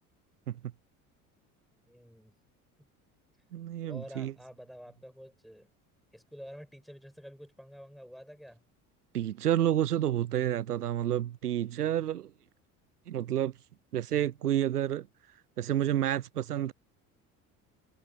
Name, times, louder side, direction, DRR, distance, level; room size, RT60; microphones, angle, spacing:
voice 1, 1.9-2.4 3.9-5.7 6.1-8.6, equal, ahead, 7.7 m, -49 dB
voice 2, 3.5-4.3 9.1-12.3 13.1-13.5 13.9-15.1 15.6-16.7, right 11 dB, 90° right, 0.6 m, -29 dB
figure-of-eight pair, 60°, 45 cm